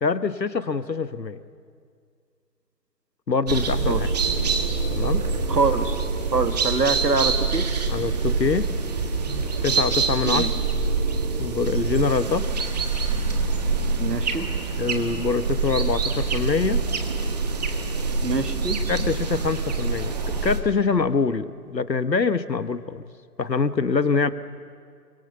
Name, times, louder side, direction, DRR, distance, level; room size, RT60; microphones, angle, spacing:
voice 1, 0.0-1.4 3.3-4.1 4.9-5.2 7.9-8.7 9.3-10.5 11.4-12.5 14.8-16.8 18.9-23.0 23.4-24.3, left 4 dB, 80° left, 13 dB, 1.4 m, -24 dB
sound 1, 3.5-20.6, right 4 dB, 25° right, 1.5 m, -25 dB
voice 2, 5.5-6.1 6.3-7.7 10.2-10.5 14.0-14.5 18.2-18.8, right 4 dB, 70° right, 8 dB, 2.0 m, -24 dB
28.5 x 24.0 x 6.9 m, 2.1 s
figure-of-eight pair, 150°, 50 cm